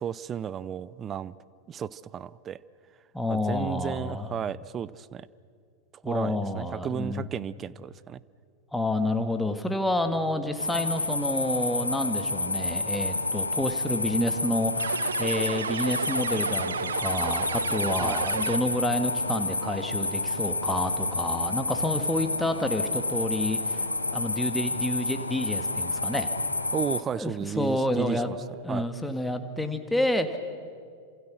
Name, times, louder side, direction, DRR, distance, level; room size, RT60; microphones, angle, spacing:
voice 1, 0.0-1.3 1.7-2.6 3.3-5.3 6.0-8.2 18.0-18.2 26.7-28.4 28.7-28.9, right 8 dB, 25° right, 19 dB, 0.6 m, -33 dB
voice 2, 3.1-4.3 6.0-7.2 8.7-23.8 24.1-26.3 27.1-28.3 28.6-30.4, left 1 dB, 5° left, 7 dB, 1.8 m, -29 dB
sound 1, 10.6-27.0, left 2 dB, 85° left, 1.1 m, -30 dB
sound 2, 14.8-18.9, right 6 dB, 70° right, 0.9 m, -32 dB
29.0 x 27.0 x 6.3 m, 2.2 s
figure-of-eight pair, 90°, 0 cm